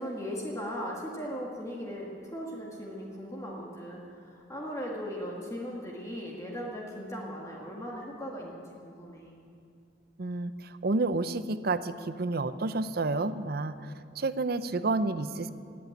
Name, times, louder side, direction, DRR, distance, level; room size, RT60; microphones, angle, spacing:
voice 1, 0.0-9.5, equal, 15° left, -2 dB, 1.6 m, -38 dB
voice 2, 10.2-15.5, right 3 dB, 55° right, 13 dB, 0.6 m, -30 dB
17.5 x 8.6 x 9.2 m, 2.5 s
head